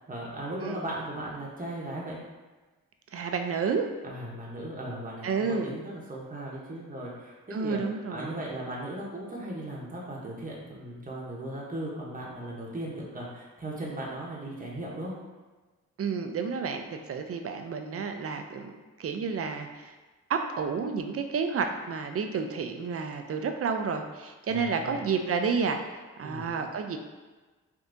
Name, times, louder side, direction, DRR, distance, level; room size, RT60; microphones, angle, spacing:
voice 1, 0.1-2.2 4.0-15.2 24.5-25.0 26.2-26.5, right 1 dB, 25° right, -4 dB, 0.8 m, -37 dB
voice 2, 3.1-3.9 5.2-5.7 7.5-8.4 16.0-19.9 20.3-25.8 26.2-27.0, right 5 dB, 40° right, 5 dB, 0.4 m, -30 dB
3.4 x 2.7 x 2.6 m, 1.3 s
cardioid pair, 45°, 36 cm